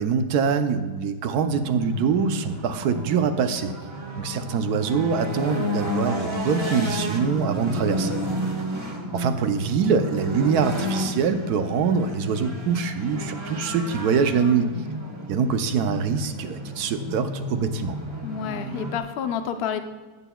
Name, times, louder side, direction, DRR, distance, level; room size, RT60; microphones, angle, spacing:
voice 1, 0.0-3.7 4.2-8.1 9.1-14.7 15.3-18.0, right 6 dB, 75° right, 9 dB, 1.2 m, -24 dB
sound 1, 1.5-19.0, equal, 25° right, 0.8 m, -32 dB
voice 2, 18.2-19.8, left 8 dB, 60° left, 8 dB, 0.6 m, -30 dB
14.5 x 9.0 x 2.3 m, 1.4 s
omnidirectional pair, 1.8 m